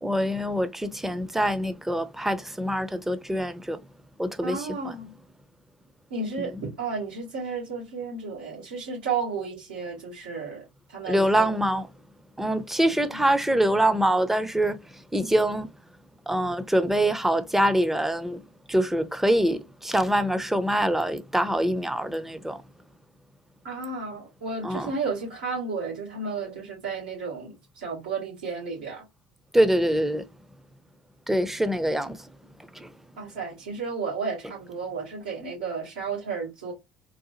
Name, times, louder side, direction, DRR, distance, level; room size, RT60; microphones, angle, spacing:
voice 1, 0.0-3.8 4.2-4.9 11.1-11.9 12.4-14.8 15.1-15.7 16.3-18.4 18.7-22.6 24.6-24.9 29.5-30.3 31.3-32.3 32.7-32.9, right 1 dB, 5° right, 0.6 m, -24 dB
voice 2, 4.4-5.1 6.1-11.6 13.1-13.2 23.6-29.0 33.2-36.7, right 4 dB, 80° right, 2.2 m, -33 dB
3.9 x 2.3 x 2.8 m
hypercardioid pair, 65°, 5 cm